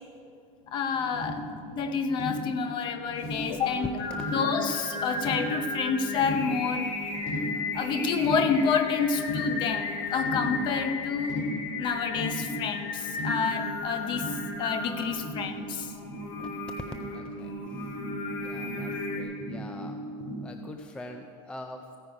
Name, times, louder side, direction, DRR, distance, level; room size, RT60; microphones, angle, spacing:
sound 1, 0.6-0.7 0.9-20.4, equal, 50° left, 3.4 m, -37 dB
voice 1, 0.7-1.5 1.7-3.9 4.3-6.9 7.7-11.4 11.8-15.9, left 6 dB, 30° left, 9 dB, 0.7 m, -29 dB
Singing, 3.3-19.2, left 3 dB, 85° left, 2.3 m, -36 dB
voice 2, 17.1-17.9 18.4-20.0 20.4-22.0, left 1 dB, 5° left, 5 dB, 0.3 m, -45 dB
15.5 x 9.3 x 5.2 m, 2.5 s
supercardioid pair, 170°, 15 cm